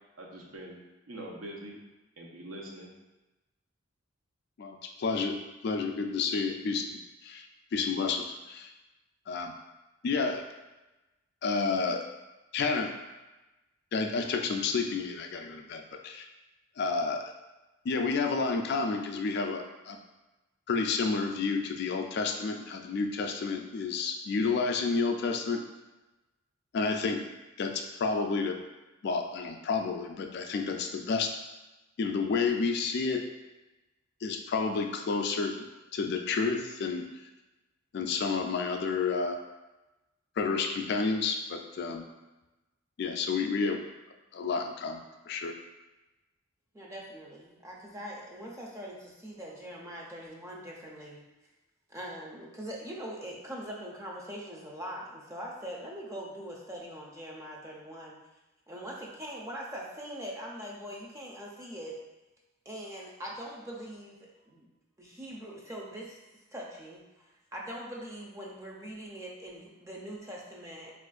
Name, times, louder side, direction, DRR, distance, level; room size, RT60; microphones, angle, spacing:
voice 1, 0.2-1.7 2.2-2.9, right 1 dB, 75° right, -1 dB, 0.6 m, -43 dB
voice 2, 4.6-7.5 7.7-8.7 9.3-9.5 10.0-10.4 11.4-12.0 12.5-12.9 13.9-16.3 16.8-17.2 17.8-20.0 20.7-25.6 26.7-27.2 27.6-28.6 29.0-31.4 32.0-33.2 34.2-35.6 35.9-37.1 37.9-39.4 40.4-42.0 43.0-43.8 44.3-45.5, left 4 dB, 50° left, 4 dB, 0.3 m, -30 dB
voice 3, 46.7-51.2 51.9-58.2 58.7-62.0 62.7-64.7 65.0-66.2 66.5-70.9, equal, 15° right, -3 dB, 0.4 m, -42 dB
4.3 x 2.5 x 2.3 m, 1.1 s
head